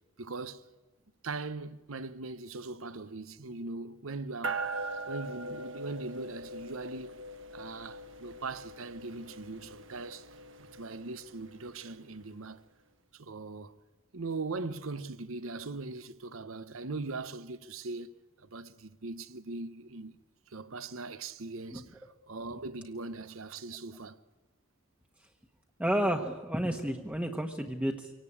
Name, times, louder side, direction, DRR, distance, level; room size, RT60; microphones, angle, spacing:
voice 1, 0.2-0.6 1.2-7.2 7.5-10.3 10.6-12.6 13.1-13.8 14.1-20.2 20.5-24.2, right 3 dB, 85° right, 1.0 m, -40 dB
sound 1, 4.4-12.1, right 2 dB, 65° right, 1.6 m, -41 dB
voice 2, 25.8-28.1, right 1 dB, 5° right, 1.1 m, -31 dB
24.5 x 18.0 x 8.6 m
head